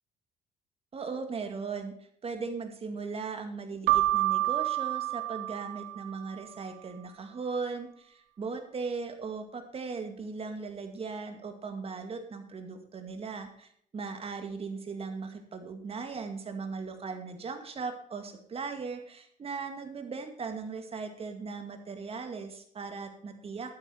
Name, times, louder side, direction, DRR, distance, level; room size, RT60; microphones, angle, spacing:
voice 1, 0.9-1.9 2.2-23.8, right 4 dB, 35° right, 6 dB, 2.2 m, -38 dB
Keyboard (musical), 3.9-6.4, right 16 dB, 85° right, 0.7 m, -28 dB
11.5 x 9.4 x 4.6 m, 0.65 s
cardioid pair, 110°, 17 cm